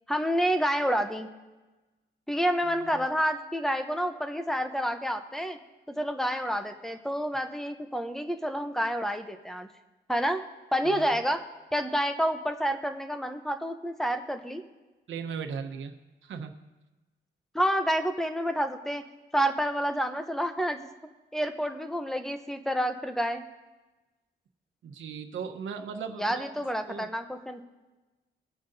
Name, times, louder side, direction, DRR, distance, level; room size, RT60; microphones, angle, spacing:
voice 1, 0.1-1.3 2.3-5.6 5.9-9.7 10.1-10.4 10.7-11.4 11.7-14.6 17.5-19.0 19.3-20.9 21.3-23.4 26.2-27.6, equal, ahead, 7 dB, 0.8 m, -29 dB
voice 2, 2.6-3.1 10.8-11.2 15.1-15.9 16.2-16.6 24.8-26.5 26.9-27.1, right 6 dB, 85° right, 6 dB, 1.1 m, -38 dB
24.0 x 9.3 x 2.7 m, 1.2 s
wide cardioid pair, 150°, 19 cm